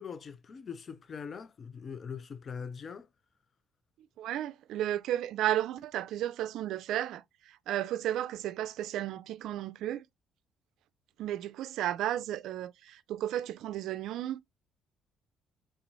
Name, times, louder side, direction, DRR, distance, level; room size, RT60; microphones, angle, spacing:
voice 1, 0.0-3.1, left 6 dB, 40° left, 0.4 m, -42 dB
voice 2, 4.2-10.1 11.2-14.4, right 12 dB, 75° right, 0.4 m, -33 dB
4.0 x 3.7 x 3.0 m
cardioid pair, 120°, 0 cm